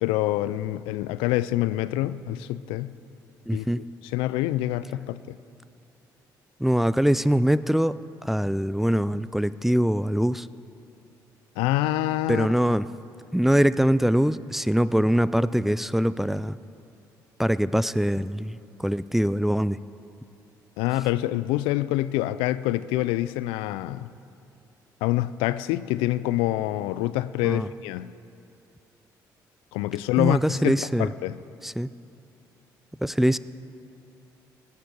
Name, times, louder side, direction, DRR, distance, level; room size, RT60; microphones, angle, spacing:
voice 1, 0.0-3.0 3.5-3.7 4.1-5.4 11.6-12.5 20.8-24.1 25.0-28.1 29.7-31.4, left 15 dB, 85° left, 0.3 m, -26 dB
voice 2, 3.5-3.8 6.6-10.5 12.3-12.9 13.3-16.6 17.4-19.8 27.4-27.7 30.2-31.1 31.6-31.9 33.0-33.4, equal, 5° right, 0.4 m, -23 dB
17.0 x 8.4 x 6.0 m
supercardioid pair, 60°, 9 cm